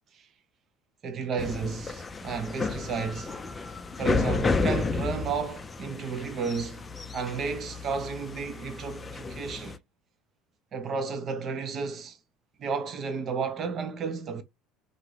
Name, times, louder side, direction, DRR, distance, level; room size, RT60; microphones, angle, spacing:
voice 1, 1.0-3.3 4.0-6.9 7.1-9.8 10.7-12.2 12.6-14.4, right 5 dB, 40° right, 0.7 m, -32 dB
sound 1, 1.4-9.8, left 4 dB, 20° left, 0.4 m, -32 dB
2.7 x 2.6 x 3.2 m
supercardioid pair, 105°, 0 cm